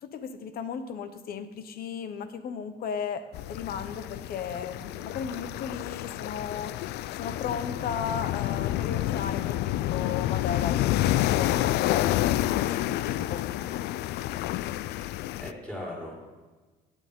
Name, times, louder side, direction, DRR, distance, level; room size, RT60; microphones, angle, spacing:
voice 1, 0.0-6.7 7.2-13.4, left 7 dB, 60° left, 10 dB, 1.0 m, -35 dB
sound 1, 3.3-15.5, left 14 dB, 75° left, 0.4 m, -29 dB
voice 2, 15.0-16.1, left 1 dB, 5° left, -5 dB, 4.7 m, -39 dB
18.0 x 9.1 x 3.7 m, 1.3 s
cardioid pair, 110°, 17 cm